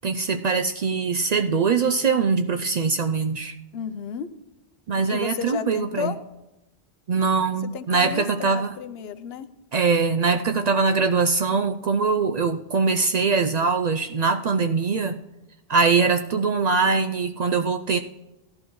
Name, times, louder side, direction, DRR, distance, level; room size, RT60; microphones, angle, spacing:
voice 1, 0.0-3.5 4.9-6.1 7.1-8.7 9.7-15.2 15.7-18.0, right 4 dB, 55° right, 7 dB, 0.4 m, -22 dB
voice 2, 3.7-4.3 5.1-6.2 7.7-9.5, left 7 dB, 70° left, 12 dB, 0.9 m, -32 dB
16.5 x 11.5 x 3.1 m, 0.96 s
omnidirectional pair, 1.1 m